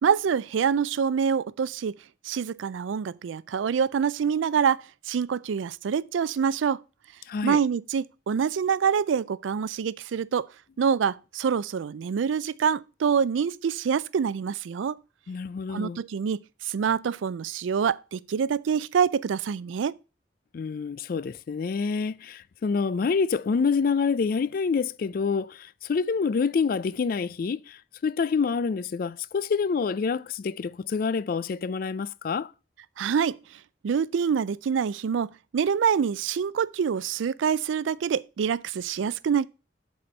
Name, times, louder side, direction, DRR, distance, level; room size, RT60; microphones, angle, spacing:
voice 1, 0.0-2.0 2.2-6.8 7.4-10.5 10.8-15.0 15.7-20.0 33.0-39.4, right 7 dB, 85° right, 0.4 m, -26 dB
voice 2, 7.3-7.6 15.3-16.0 20.5-32.5, left 5 dB, 50° left, 0.3 m, -27 dB
7.6 x 4.3 x 6.5 m
head